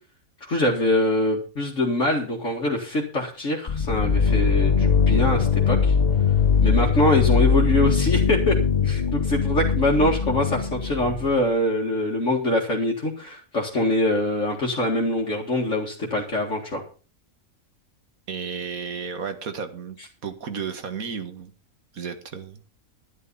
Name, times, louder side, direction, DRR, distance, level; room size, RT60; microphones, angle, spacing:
voice 1, 0.4-6.0 6.6-8.6 8.8-16.8, left 1 dB, 60° left, -2 dB, 2.4 m, -24 dB
sound 1, 3.7-11.4, left 6 dB, 35° left, 0.8 m, -21 dB
voice 2, 18.3-20.0 20.2-21.5 21.9-22.6, right 6 dB, 80° right, 8 dB, 1.9 m, -33 dB
11.0 x 11.0 x 5.5 m, 0.37 s
omnidirectional pair, 1.5 m